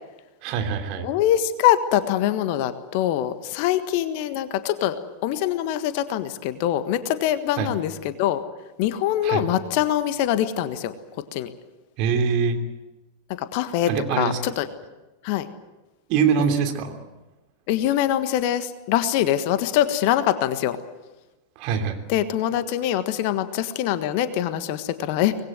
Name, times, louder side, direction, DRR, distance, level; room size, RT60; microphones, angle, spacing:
voice 1, 0.4-1.1 7.6-7.7 9.2-9.4 12.0-12.7 13.9-14.5 16.1-17.0 21.5-22.0, right 6 dB, 40° right, 5 dB, 3.0 m, -24 dB
voice 2, 1.0-5.0 5.2-8.4 8.8-10.9 11.3-11.5 13.4-13.9 14.2-14.7 15.2-15.5 16.4-16.5 17.7-20.8 22.1-25.4, left 12 dB, 45° left, 11 dB, 1.5 m, -23 dB
24.5 x 20.0 x 7.9 m, 1.1 s
figure-of-eight pair, 90°, 0 cm